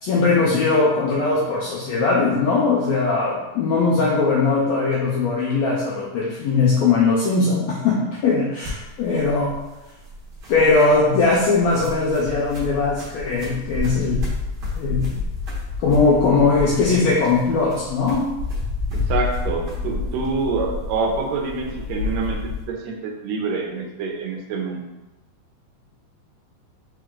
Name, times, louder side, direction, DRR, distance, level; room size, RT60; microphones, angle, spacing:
voice 1, 0.0-9.5 10.5-14.2 14.8-15.1 15.8-18.3, left 3 dB, 85° left, -4 dB, 1.5 m, -20 dB
sound 1, 8.6-22.6, left 3 dB, 55° right, 1.1 m, -30 dB
voice 2, 18.9-24.8, right 4 dB, 80° right, 1 dB, 1.7 m, -26 dB
4.8 x 3.0 x 3.6 m, 1.0 s
omnidirectional pair, 3.8 m